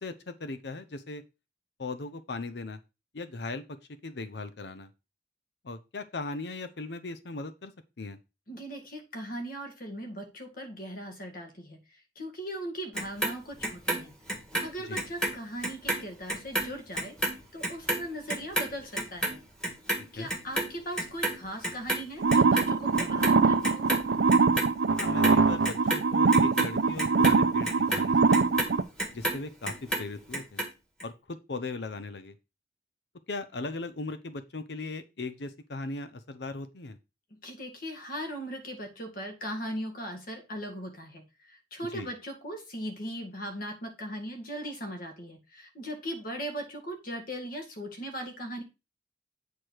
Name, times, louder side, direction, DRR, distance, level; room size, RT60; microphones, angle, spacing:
voice 1, 0.0-1.2 1.8-2.8 3.1-3.6 4.0-4.9 5.6-7.7 8.0-8.2 14.8-15.0 20.2-20.3 25.0-28.4 29.1-30.6 31.0-32.3 33.3-37.0 41.9-42.1, left 3 dB, 65° left, 10 dB, 0.7 m, -38 dB
voice 2, 8.5-14.1 14.6-19.4 20.1-23.9 37.3-48.6, equal, 50° left, 3 dB, 2.1 m, -39 dB
Clock, 13.0-15.4 15.6-22.0 22.3-23.4 23.6-24.7 25.0-29.4 29.7-30.7 31.0-31.1, right 1 dB, 5° left, 1.7 m, -31 dB
sound 1, 22.2-28.8, right 4 dB, 80° right, 0.6 m, -23 dB
8.4 x 4.5 x 4.7 m, 0.27 s
head